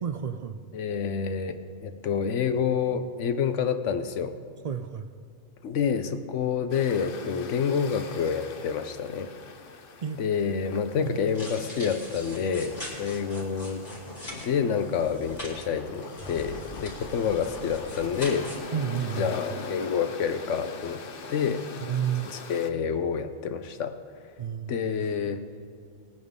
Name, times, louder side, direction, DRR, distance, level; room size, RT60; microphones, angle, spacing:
voice 1, 0.0-0.6 4.6-5.1 10.0-10.2 11.0-11.2 18.7-19.4 21.8-22.3 24.4-24.7, right 8 dB, 60° right, 10 dB, 0.4 m, -30 dB
voice 2, 0.7-4.3 5.6-9.3 10.2-13.8 14.3-18.5 19.2-21.0 21.3-21.7 22.2-24.0 24.7-25.4, left 6 dB, 90° left, 9 dB, 1.1 m, -28 dB
sound 1, 6.7-22.7, left 4 dB, 55° left, 0.9 m, -43 dB
sound 2, 11.3-18.6, left 1 dB, 35° left, 2.8 m, -41 dB
19.5 x 9.4 x 3.7 m, 2.3 s
omnidirectional pair, 1.2 m